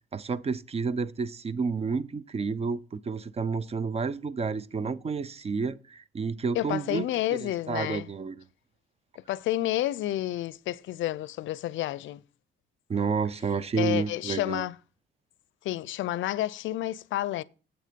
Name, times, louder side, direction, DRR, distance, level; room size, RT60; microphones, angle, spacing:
voice 1, 0.0-8.3 12.9-14.6, right 5 dB, 30° right, 0.5 m, -30 dB
voice 2, 6.6-8.1 9.3-12.2 13.8-14.8 15.6-17.4, left 14 dB, 75° left, 0.4 m, -30 dB
8.0 x 6.5 x 5.1 m
cardioid pair, 90°, 20 cm